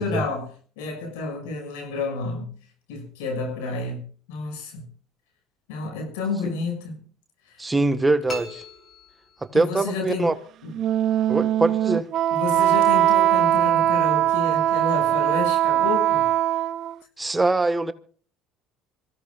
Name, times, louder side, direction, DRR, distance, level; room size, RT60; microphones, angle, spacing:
voice 1, 0.0-2.5 2.9-4.9 5.7-7.0 7.4-7.6 9.5-10.3 10.6-10.8 12.3-16.3, left 3 dB, 85° left, 6.4 m, -30 dB
voice 2, 7.6-8.6 9.4-10.3 11.3-12.1 17.2-17.9, right 2 dB, 15° right, 1.4 m, -23 dB
sound 1, 8.3-9.8, left 1 dB, 40° left, 4.4 m, -38 dB
Wind instrument woodwind instrument, 10.7-16.9, right 12 dB, 55° right, 0.6 m, -21 dB
26.5 x 16.5 x 2.5 m
supercardioid pair, 85°, 0 cm